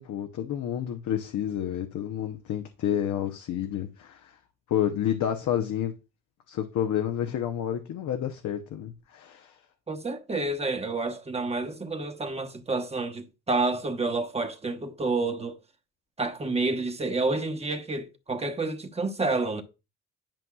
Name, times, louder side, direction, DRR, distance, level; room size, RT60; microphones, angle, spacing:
voice 1, 0.0-4.4 4.7-5.9 6.5-9.6, left 10 dB, 75° left, 0.9 m, -30 dB
voice 2, 9.9-15.6 16.2-19.6, right 3 dB, 20° right, 1.1 m, -29 dB
10.5 x 5.4 x 2.4 m
cardioid pair, 90°, 30 cm